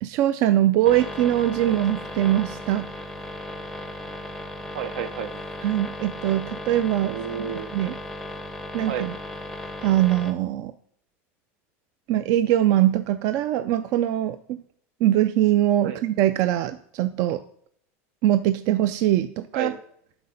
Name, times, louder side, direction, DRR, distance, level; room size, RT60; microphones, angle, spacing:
voice 1, 0.0-2.9 5.6-7.2 7.7-8.0 8.7-9.2 9.8-10.7 12.1-14.6 15.0-17.4 18.2-19.7, right 13 dB, 50° right, 11 dB, 0.3 m, -22 dB
sound 1, 0.8-10.3, left 1 dB, ahead, 0.6 m, -36 dB
voice 2, 4.7-5.3 7.0-7.7 8.9-9.1 15.8-16.0 19.5-19.8, right 8 dB, 75° right, 12 dB, 0.8 m, -31 dB
7.9 x 4.2 x 5.4 m, 0.64 s
supercardioid pair, 160°, 7 cm